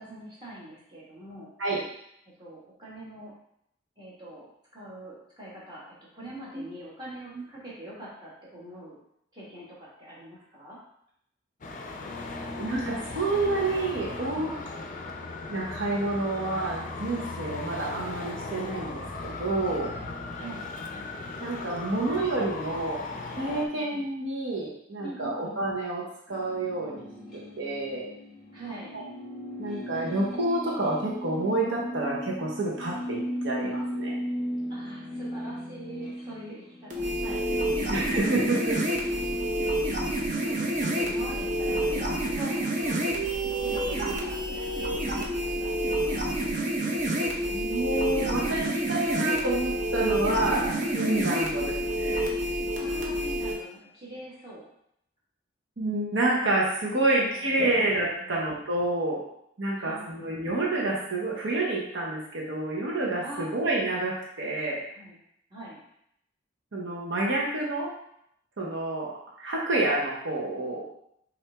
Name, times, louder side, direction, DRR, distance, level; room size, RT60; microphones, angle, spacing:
voice 1, 0.0-1.5 2.4-3.3 4.0-4.4 4.7-5.8 6.1-9.0 9.3-10.8 20.3-20.7 23.7-23.8 25.0-25.5 28.5-28.9 34.7-38.1 39.0-39.6 40.4-43.0 43.6-46.3 52.7-54.7 57.2-57.6 58.2-58.4 59.7-60.2 63.2-63.5 64.9-65.2 65.5-65.8, right 1 dB, 20° right, -7 dB, 1.5 m, -44 dB
Traffic noise roadway noise, 11.6-23.7, left 3 dB, 40° left, 0.4 m, -37 dB
voice 2, 12.5-14.5 15.5-19.9 21.4-23.0 23.4-26.0 26.3-27.0 27.6-28.1 28.9-29.0 29.6-33.2 33.4-34.2 37.9-38.8 47.4-52.3 55.8-59.2 59.6-64.8 66.7-67.9 68.6-69.1 69.4-70.9, right 2 dB, 75° right, -4 dB, 0.9 m, -28 dB
sound 1, 26.3-43.5, equal, ahead, 1.2 m, -37 dB
sound 2, 36.9-53.5, right 1 dB, 40° right, 0.8 m, -28 dB
5.8 x 2.7 x 3.4 m, 0.74 s
head